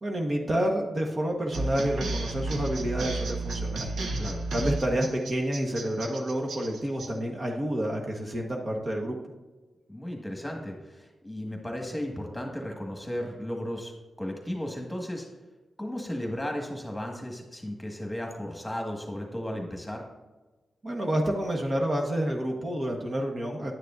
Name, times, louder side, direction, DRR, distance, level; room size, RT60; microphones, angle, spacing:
voice 1, 0.0-3.9 4.5-9.2 20.8-23.7, right 1 dB, 45° right, 0 dB, 1.3 m, -29 dB
sound 1, 1.5-7.1, right 2 dB, 85° right, 0.8 m, -32 dB
voice 2, 9.9-13.9 14.2-15.3 15.8-20.0, left 1 dB, 10° left, 1 dB, 1.7 m, -35 dB
10.0 x 6.6 x 2.6 m, 1.2 s
cardioid pair, 75°, 0 cm